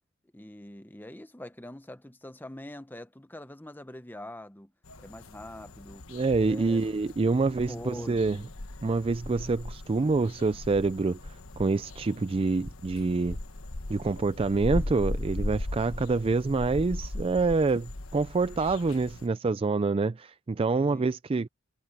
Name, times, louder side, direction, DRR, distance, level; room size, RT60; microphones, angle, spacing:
voice 1, 0.3-4.7 5.0-6.1 6.5-6.8 7.6-8.5 20.9-21.1, left 1 dB, 10° left, 1.1 m, -44 dB
sound 1, 4.8-19.3, left 1 dB, 75° left, 1.3 m, -38 dB
voice 2, 6.1-8.4 8.8-13.4 13.9-21.5, right 3 dB, 25° right, 0.4 m, -26 dB
head